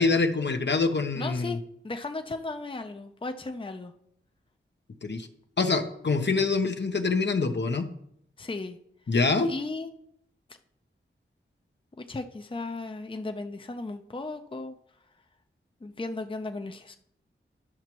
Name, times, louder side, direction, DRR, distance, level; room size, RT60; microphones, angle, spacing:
voice 1, 0.0-1.6 5.0-5.3 5.6-7.9 9.1-9.5, left 4 dB, 55° left, 6 dB, 0.8 m, -25 dB
voice 2, 1.1-1.6 1.8-3.9 8.4-8.8 9.4-9.9 12.0-14.7 15.8-16.9, left 3 dB, 25° left, 6 dB, 0.6 m, -35 dB
11.0 x 5.7 x 3.0 m, 0.71 s
cardioid pair, 40°, 21 cm